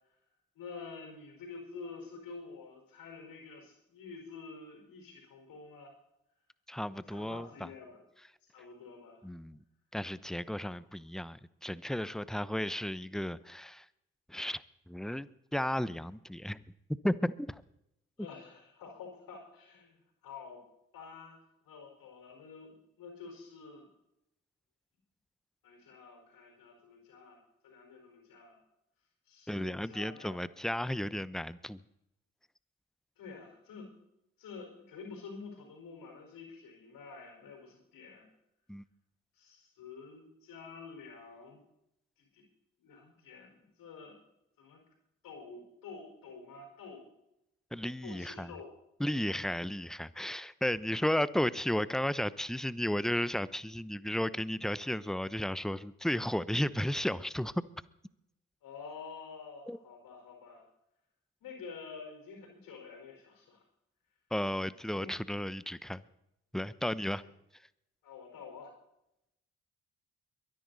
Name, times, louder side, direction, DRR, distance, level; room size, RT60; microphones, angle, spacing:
voice 1, 0.5-5.9 7.1-8.0 8.5-9.3 10.6-10.8 18.2-20.6 20.9-23.9 25.6-28.6 29.3-30.4 33.2-33.9 34.4-38.3 39.3-41.6 42.3-42.4 42.8-44.2 44.6-44.8 45.2-47.0 48.0-48.8 58.6-60.6 61.4-63.6 64.9-65.1 68.0-68.7, left 4 dB, 75° left, 1 dB, 4.6 m, -49 dB
voice 2, 6.7-7.7 9.2-9.6 9.9-13.8 14.3-16.6 17.0-17.6 29.5-31.8 38.7-38.8 47.7-48.5 49.0-57.6 59.7-59.8 64.3-66.0 66.5-67.2, left 1 dB, ahead, 17 dB, 0.8 m, -34 dB
23.0 x 10.5 x 4.1 m, 0.81 s
hypercardioid pair, 40°, 34 cm